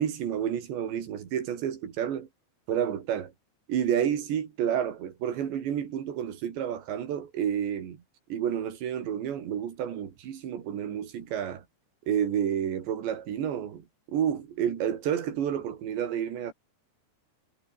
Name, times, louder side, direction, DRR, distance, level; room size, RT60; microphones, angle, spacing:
voice 1, 0.0-2.3 2.7-3.3 3.7-8.0 8.3-11.6 12.1-16.5, right 9 dB, 70° right, 5.2 m, -30 dB
omnidirectional pair, 5.2 m